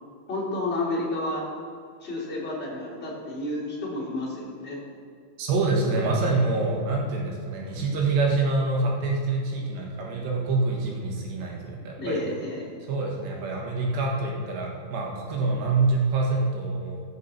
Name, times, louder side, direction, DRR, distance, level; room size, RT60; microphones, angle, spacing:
voice 1, 0.3-1.4 2.0-4.8 12.0-12.7, left 2 dB, 15° left, -7 dB, 2.8 m, -30 dB
voice 2, 5.4-12.2 12.9-17.0, right 3 dB, 70° right, -1 dB, 3.6 m, -26 dB
16.0 x 7.6 x 4.2 m, 2.2 s
omnidirectional pair, 5.2 m